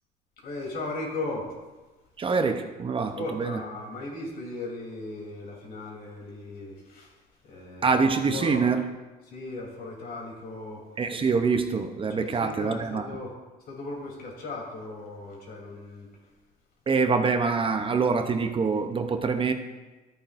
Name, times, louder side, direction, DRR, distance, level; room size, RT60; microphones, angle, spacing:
voice 1, 0.4-1.5 3.1-8.0 8.3-8.7 9.3-10.9 12.1-13.3 13.7-16.1, left 2 dB, 65° left, -1 dB, 3.3 m, -37 dB
voice 2, 2.2-3.6 7.8-8.9 11.0-13.1 16.9-19.5, right 4 dB, 30° right, 7 dB, 0.7 m, -25 dB
13.5 x 8.6 x 2.6 m, 1.2 s
cardioid pair, 110°, 17 cm